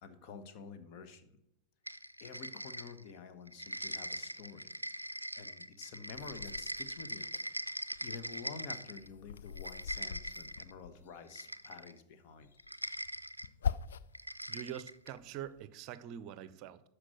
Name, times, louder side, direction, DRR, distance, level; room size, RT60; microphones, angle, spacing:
voice 1, 0.0-1.3 2.2-4.7 5.4-7.3 7.6-7.7 8.0-12.5, left 5 dB, 45° left, 9 dB, 1.3 m, -49 dB
sound 1, 1.9-3.2 3.5-9.1 9.5-10.7 11.3-12.0 12.6-13.5 14.1-15.2, right 1 dB, 90° right, 0.4 m, -42 dB
sound 2, 6.1-7.4 7.8-11.4 12.4-14.3 14.7-15.6, left 7 dB, 65° left, 0.4 m, -42 dB
voice 2, 14.5-16.8, right 10 dB, 40° right, 15 dB, 0.6 m, -44 dB
12.5 x 4.9 x 7.8 m, 0.79 s
figure-of-eight pair, 90°, 0 cm